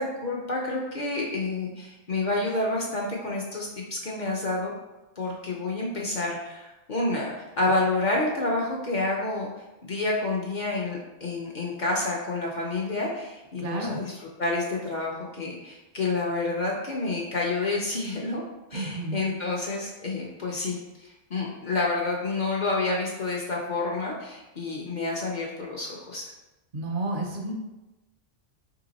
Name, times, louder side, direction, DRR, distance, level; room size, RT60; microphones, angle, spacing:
voice 1, 0.0-4.7 5.2-9.5 9.8-18.4 18.7-26.3, left 2 dB, 50° left, -2 dB, 0.6 m, -29 dB
voice 2, 13.6-14.0 18.7-19.2 26.7-27.5, right 2 dB, 55° right, 2 dB, 0.7 m, -31 dB
3.2 x 2.9 x 3.9 m, 1.0 s
omnidirectional pair, 1.2 m